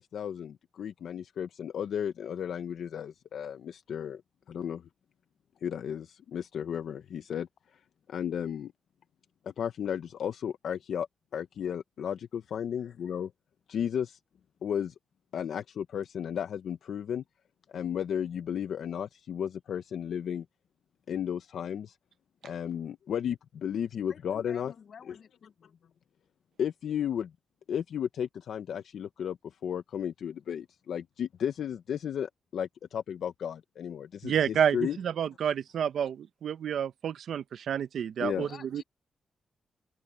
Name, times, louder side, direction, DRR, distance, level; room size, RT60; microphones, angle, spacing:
voice 1, 0.0-4.2 4.5-4.9 5.6-7.8 8.1-8.7 9.6-11.1 11.3-13.3 13.7-14.2 14.6-14.9 15.3-17.2 17.7-20.5 21.1-22.0 22.4-24.7 25.1-25.2 26.6-27.3 27.7-35.0 38.2-38.5, left 8 dB, 80° left, 0.6 m, -34 dB
voice 2, 24.4-25.8 38.5-38.8, left 7 dB, 60° left, 6.7 m, -51 dB
voice 3, 34.2-38.8, right 8 dB, 80° right, 0.7 m, -29 dB
open air
cardioid pair, 115°, 0 cm